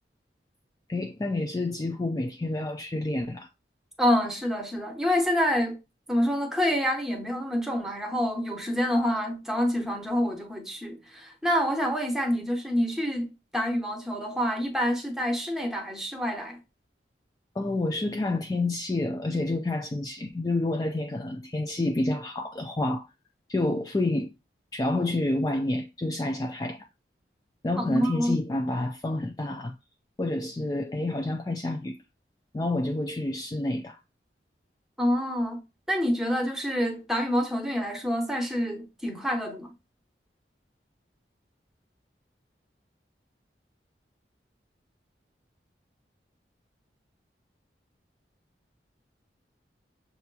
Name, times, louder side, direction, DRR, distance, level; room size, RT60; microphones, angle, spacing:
voice 1, 0.9-3.5 17.6-23.1 23.5-24.3 24.7-26.9 27.6-29.8 30.2-32.0 32.5-34.0, left 2 dB, 20° left, 0.3 m, -29 dB
voice 2, 4.0-5.8 6.1-16.6 27.8-28.4 35.0-35.6 35.9-39.7, equal, 5° right, 0.9 m, -27 dB
6.7 x 2.9 x 2.2 m
head